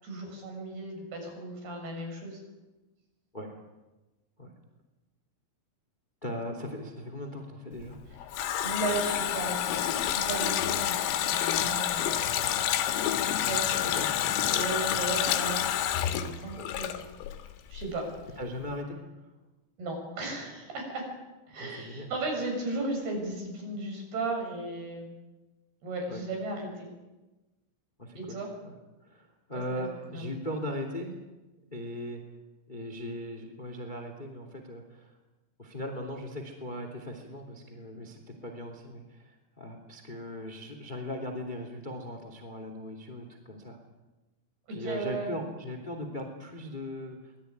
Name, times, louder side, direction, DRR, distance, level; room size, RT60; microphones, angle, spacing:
voice 1, 0.0-2.4 8.6-12.5 13.5-13.9 14.2-15.7 16.0-17.0 17.7-18.1 19.8-21.0 21.5-25.1 25.8-26.9 28.2-28.5 29.5-30.3 44.7-45.3, right 2 dB, 50° right, 2 dB, 8.8 m, -35 dB
voice 2, 6.2-8.0 13.2-14.2 16.6-16.7 18.4-19.3 21.6-22.1 26.1-26.2 28.0-28.7 29.0-31.2 31.7-32.2 32.7-35.1 35.6-43.8 44.7-47.5, left 1 dB, 15° left, 5 dB, 1.7 m, -39 dB
Water tap faucet, 7.9-17.5 17.7-17.9, left 10 dB, 80° left, 4.2 m, -28 dB
25.0 x 20.0 x 9.5 m, 1.1 s
omnidirectional pair, 6.0 m